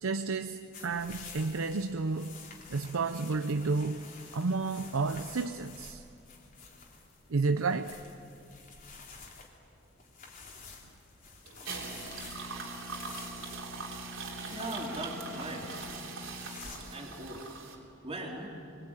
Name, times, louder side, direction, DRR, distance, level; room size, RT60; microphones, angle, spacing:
voice 1, 0.0-2.4 2.7-4.0 4.3-6.0 7.3-8.0, right 4 dB, 90° right, 9 dB, 0.7 m, -31 dB
sound 1, 0.7-17.0, left 4 dB, 40° left, 3.2 m, -50 dB
sound 2, 11.5-17.8, right 3 dB, 70° right, 3.5 m, -41 dB
voice 2, 14.5-15.7 16.8-17.5 18.0-18.6, right 1 dB, 30° right, -2 dB, 3.9 m, -39 dB
24.5 x 20.5 x 9.0 m, 2.7 s
head